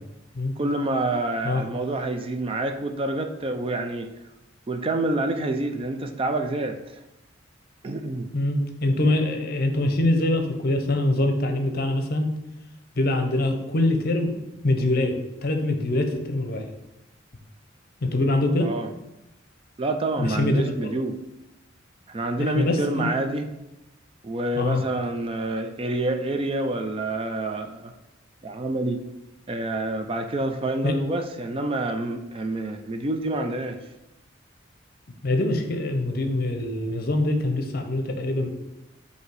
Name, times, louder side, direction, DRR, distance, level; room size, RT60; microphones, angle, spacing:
voice 1, 0.6-4.1 4.7-7.0 7.8-8.3 18.6-18.9 19.8-21.2 22.1-23.5 24.2-27.9 28.4-29.1 29.5-33.8, right 2 dB, 30° right, 6 dB, 0.4 m, -27 dB
voice 2, 8.3-12.3 13.0-14.4 14.6-15.2 15.4-16.7 18.0-18.7 20.2-20.9 22.4-23.1 24.6-24.8 30.8-30.9 35.2-38.5, left 1 dB, 50° left, 5 dB, 0.8 m, -24 dB
7.7 x 2.8 x 4.6 m, 0.90 s
head